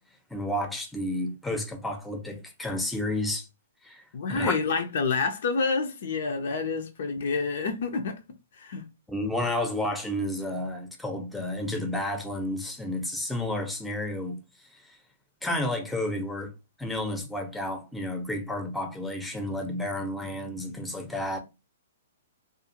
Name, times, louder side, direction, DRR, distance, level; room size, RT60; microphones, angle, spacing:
voice 1, 0.3-3.5 3.8-4.0 4.3-4.5 9.1-14.4 15.4-16.5 16.8-21.4, left 1 dB, 5° left, 0.6 m, -31 dB
voice 2, 4.1-8.2 8.6-8.8, left 4 dB, 60° left, 0.5 m, -28 dB
2.5 x 2.4 x 2.8 m
hypercardioid pair, 125°, 0 cm